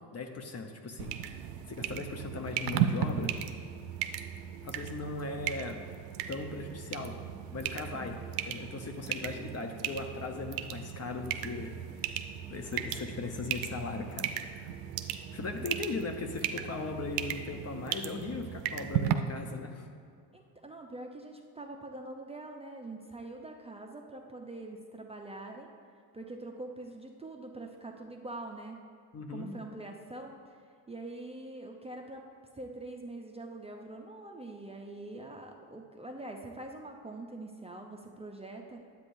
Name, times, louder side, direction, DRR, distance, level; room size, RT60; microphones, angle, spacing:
voice 1, 0.1-3.3 4.6-5.8 6.3-7.2 7.5-11.7 12.5-14.7 15.3-19.9 29.1-29.5, left 3 dB, 35° left, 5 dB, 0.8 m, -38 dB
sound 1, 1.0-19.1, right 10 dB, 85° right, 0.6 m, -36 dB
voice 2, 20.3-25.7 26.1-28.8 29.3-30.6 30.9-32.2 32.5-38.8, right 2 dB, 15° right, 1 dB, 0.6 m, -44 dB
9.7 x 8.3 x 2.6 m, 2.2 s
supercardioid pair, 70°, 46 cm